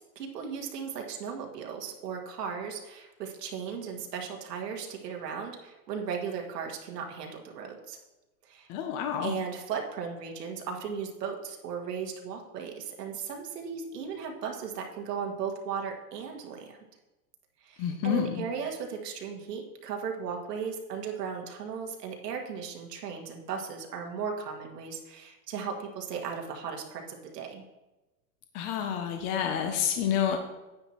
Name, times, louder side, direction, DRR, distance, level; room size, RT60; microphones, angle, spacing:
voice 1, 0.0-8.0 8.5-8.7 9.2-16.8 17.6-27.6, right 6 dB, 80° right, 1 dB, 1.8 m, -36 dB
voice 2, 8.7-9.3 17.8-18.5 28.5-30.4, left 8 dB, 20° left, 5 dB, 0.4 m, -29 dB
9.7 x 9.0 x 2.9 m, 1.1 s
hypercardioid pair, 140°, 48 cm